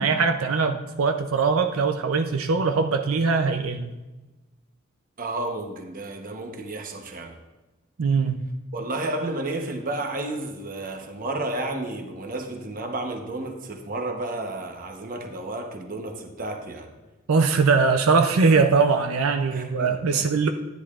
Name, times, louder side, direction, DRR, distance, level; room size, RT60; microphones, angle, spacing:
voice 1, 0.0-3.9 8.0-8.4 17.3-20.5, right 4 dB, 90° right, 6 dB, 0.5 m, -21 dB
voice 2, 5.2-7.4 8.7-16.9 19.5-20.5, right 2 dB, 40° right, 4 dB, 1.0 m, -32 dB
10.5 x 10.5 x 2.4 m, 1.1 s
head